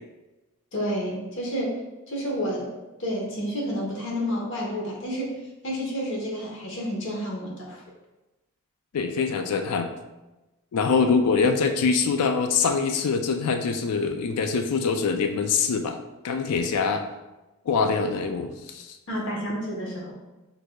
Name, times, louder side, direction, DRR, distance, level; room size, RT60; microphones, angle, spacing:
voice 1, 0.7-1.8 2.1-7.8 19.1-20.1, equal, 55° left, -3 dB, 1.1 m, -30 dB
voice 2, 8.9-9.9 10.7-16.0 16.2-17.0 17.7-19.0, left 5 dB, 85° left, 7 dB, 0.4 m, -24 dB
6.1 x 2.6 x 2.3 m, 1.0 s
head